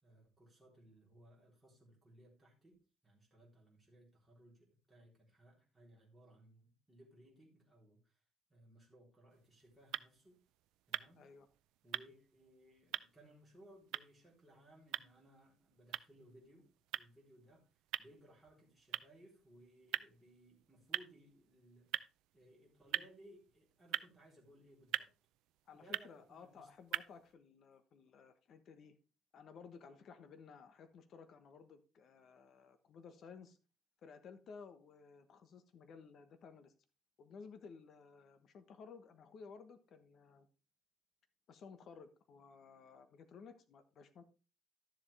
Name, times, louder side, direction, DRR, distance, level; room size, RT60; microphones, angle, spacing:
voice 1, 0.0-2.8 3.0-8.2 8.5-10.4 10.9-11.2 11.8-16.7 16.9-17.7 18.0-21.9 22.3-25.1 25.7-26.7, right 1 dB, 5° right, -4 dB, 3.6 m, -63 dB
sound 1, 9.3-27.4, right 16 dB, 80° right, 0.4 m, -46 dB
voice 2, 11.2-11.5 25.7-29.0 29.3-33.6 34.0-36.7 37.2-40.5 41.5-44.2, left 5 dB, 45° left, 10 dB, 1.2 m, -56 dB
12.5 x 7.2 x 3.4 m, 0.32 s
cardioid pair, 160°, 0 cm